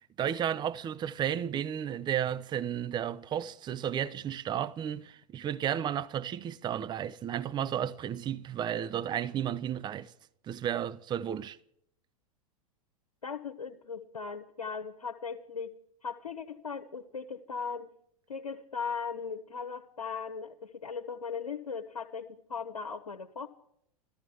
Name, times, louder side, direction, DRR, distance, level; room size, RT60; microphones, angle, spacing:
voice 1, 0.2-10.1 10.4-11.6, right 9 dB, 25° right, 0.7 m, -33 dB
voice 2, 13.2-15.7 16.0-17.9 18.3-23.5, left 5 dB, 80° left, 1.2 m, -38 dB
14.0 x 14.0 x 6.3 m
figure-of-eight pair, 95°, 19 cm